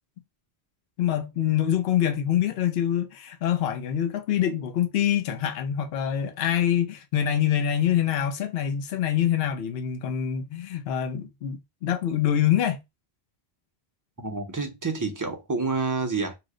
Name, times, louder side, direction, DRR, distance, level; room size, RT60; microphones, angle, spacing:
voice 1, 1.0-12.8, left 10 dB, 70° left, 0.8 m, -25 dB
voice 2, 14.2-16.3, right 3 dB, 25° right, 0.4 m, -28 dB
3.0 x 2.1 x 3.5 m
omnidirectional pair, 1.1 m